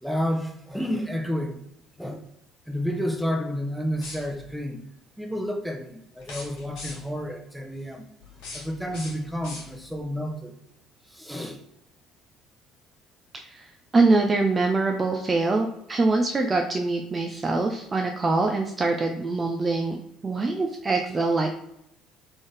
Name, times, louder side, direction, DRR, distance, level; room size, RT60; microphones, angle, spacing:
voice 1, 0.0-1.6 2.0-2.2 2.7-4.9 5.2-8.0 8.5-10.5 11.1-11.6, equal, ahead, 3 dB, 0.8 m, -30 dB
sound 1, 3.9-4.6 6.2-7.2 8.2-10.1, left 3 dB, 65° left, 1.6 m, -42 dB
voice 2, 13.3-21.5, right 3 dB, 25° right, 3 dB, 0.5 m, -24 dB
3.9 x 3.7 x 3.4 m, 0.78 s
figure-of-eight pair, 55°, 0 cm